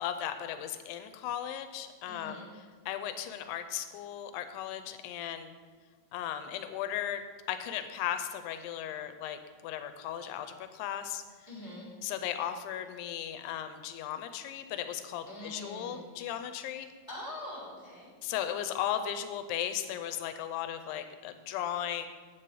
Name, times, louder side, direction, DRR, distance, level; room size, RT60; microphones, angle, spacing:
voice 1, 0.0-2.4 2.9-5.5 6.1-7.2 7.5-11.2 12.0-16.9 18.2-22.1, left 10 dB, 90° left, 9 dB, 2.6 m, -36 dB
voice 2, 2.1-2.5 11.5-11.9 15.3-16.0 17.1-18.1, left 1 dB, 10° right, -8 dB, 2.6 m, -43 dB
9.6 x 7.6 x 4.7 m, 1.5 s
omnidirectional pair, 4.6 m